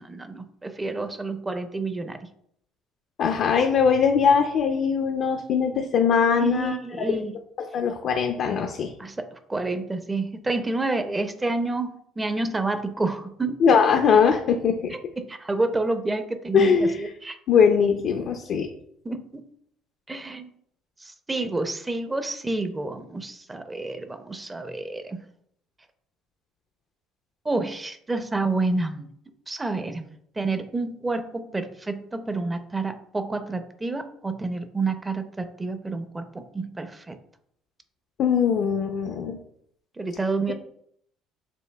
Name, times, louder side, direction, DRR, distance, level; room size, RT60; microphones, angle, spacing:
voice 1, 0.0-2.2 6.4-7.4 9.0-13.6 14.9-17.4 19.0-19.4 20.1-20.5 21.0-25.2 27.4-29.1 29.5-30.1 30.4-37.2 40.0-40.5, right 3 dB, 15° right, 9 dB, 0.5 m, -29 dB
voice 2, 3.2-6.8 7.1-7.2 7.6-8.9 13.6-14.9 16.5-17.0 17.5-18.7 38.2-39.4, left 6 dB, 60° left, 4 dB, 0.4 m, -21 dB
6.9 x 2.6 x 2.2 m, 0.69 s
supercardioid pair, 85°, 0 cm